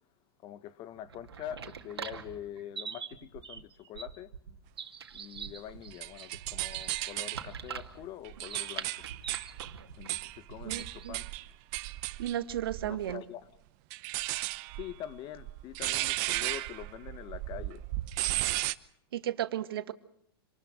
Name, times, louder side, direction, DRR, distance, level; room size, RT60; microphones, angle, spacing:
voice 1, 0.4-4.3 5.1-9.0 9.9-11.3 12.8-13.5 14.8-17.8, left 11 dB, 35° left, 1.3 m, -44 dB
sound 1, 1.0-11.2, right 7 dB, 85° right, 2.3 m, -43 dB
sound 2, 5.4-7.5 8.0-13.1 13.9-18.7, right 21 dB, 45° right, 1.0 m, -35 dB
voice 2, 10.6-11.2 12.2-13.2 19.1-19.9, right 11 dB, 70° right, 1.6 m, -34 dB
26.5 x 20.0 x 6.3 m
hypercardioid pair, 115°, 13 cm